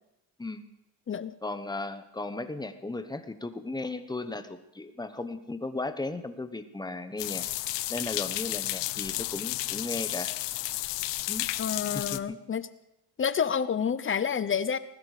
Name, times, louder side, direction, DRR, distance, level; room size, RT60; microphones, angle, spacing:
voice 1, 1.4-7.5 7.9-10.3 11.3-11.5 11.9-12.4, left 2 dB, 10° left, 10 dB, 1.0 m, -36 dB
sound 1, 7.2-12.2, left 18 dB, 80° left, 0.7 m, -32 dB
voice 2, 11.6-12.7 13.2-14.8, left 7 dB, 30° left, 15 dB, 0.7 m, -29 dB
20.0 x 12.5 x 5.0 m, 0.88 s
cardioid pair, 120°, 42 cm